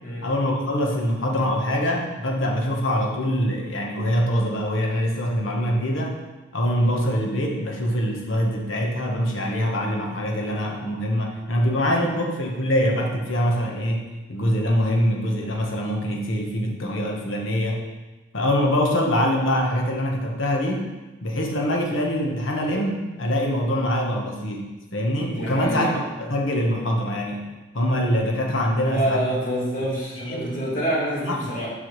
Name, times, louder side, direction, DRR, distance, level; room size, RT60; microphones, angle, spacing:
voice 1, 0.2-6.2 6.5-17.9 18.3-20.8 21.2-27.5 27.7-29.2 30.2-30.6 31.2-31.4, equal, 85° left, 0 dB, 1.2 m, -24 dB
voice 2, 25.2-25.9 28.7-31.7, right 1 dB, 40° left, -5 dB, 1.9 m, -27 dB
7.6 x 6.2 x 3.2 m, 1.1 s
head